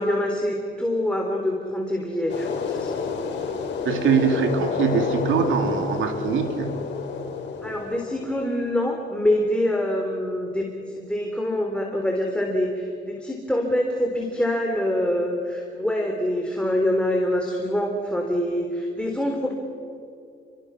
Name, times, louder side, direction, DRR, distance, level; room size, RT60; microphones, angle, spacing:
voice 1, 0.0-3.2 7.6-10.7 10.9-19.5, left 1 dB, 5° left, 1 dB, 3.4 m, -25 dB
sound 1, 2.3-8.7, left 5 dB, 65° left, 4.0 m, -29 dB
voice 2, 3.8-6.8, right 6 dB, 80° right, 5 dB, 2.8 m, -23 dB
29.0 x 23.5 x 6.3 m, 2.5 s
cardioid pair, 90°, 20 cm